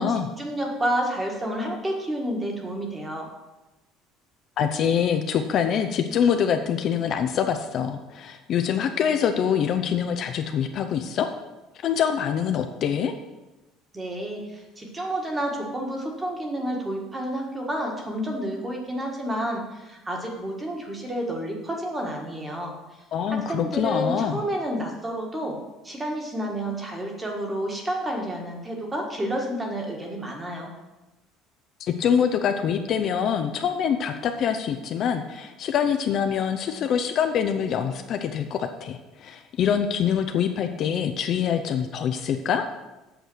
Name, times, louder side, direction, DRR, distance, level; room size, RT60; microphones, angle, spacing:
voice 1, 0.4-3.3 13.9-22.7 23.3-25.6 25.8-30.7, right 1 dB, 15° right, 1 dB, 1.6 m, -30 dB
voice 2, 4.6-11.3 11.8-13.1 23.1-24.4 31.8-42.6, left 8 dB, 40° left, 6 dB, 0.6 m, -25 dB
8.0 x 6.8 x 6.2 m, 1.1 s
cardioid pair, 165°, 0 cm